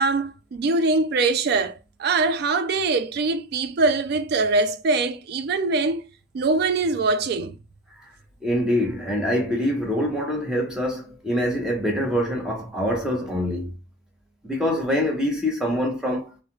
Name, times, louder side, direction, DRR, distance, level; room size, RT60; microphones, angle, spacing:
voice 1, 0.0-6.1 6.3-7.6, right 3 dB, 55° right, 0.3 m, -23 dB
voice 2, 8.4-13.7 14.4-16.3, equal, 5° right, 0.7 m, -24 dB
2.3 x 2.1 x 2.9 m
head